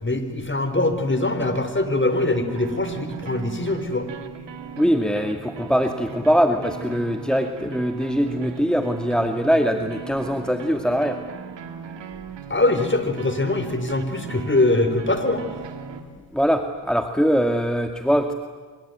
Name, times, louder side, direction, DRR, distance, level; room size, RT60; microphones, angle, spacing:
voice 1, 0.0-4.1 12.5-15.4, left 2 dB, 25° left, 9 dB, 4.4 m, -22 dB
sound 1, 2.5-16.0, right 6 dB, 80° right, 2.3 m, -38 dB
voice 2, 4.8-11.2 16.3-18.3, equal, ahead, 6 dB, 1.9 m, -22 dB
24.5 x 23.0 x 9.4 m, 1.5 s
supercardioid pair, 50°, 42 cm